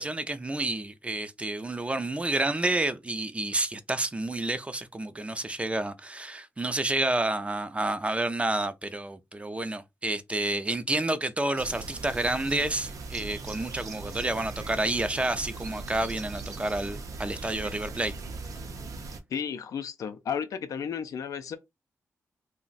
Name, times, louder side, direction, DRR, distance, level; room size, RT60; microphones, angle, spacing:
voice 1, 0.0-18.1, right 2 dB, 20° right, 0.5 m, -29 dB
sound 1, 11.6-19.2, right 3 dB, 75° right, 0.6 m, -39 dB
voice 2, 19.3-21.6, left 7 dB, 85° left, 0.4 m, -33 dB
2.5 x 2.1 x 3.9 m
cardioid pair, 60°, 6 cm